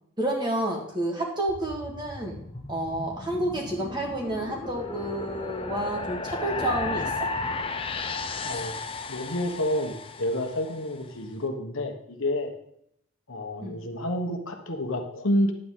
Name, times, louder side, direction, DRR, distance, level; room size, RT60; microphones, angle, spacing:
voice 1, 0.2-2.4 2.7-7.1 13.6-13.8, right 1 dB, 20° right, 0 dB, 1.8 m, -30 dB
sound 1, 1.5-10.9, left 3 dB, 25° left, 0.6 m, -34 dB
voice 2, 8.4-8.7 9.1-12.5 13.3-15.5, left 1 dB, 65° left, 4 dB, 1.2 m, -29 dB
10.5 x 8.7 x 3.7 m, 0.71 s
head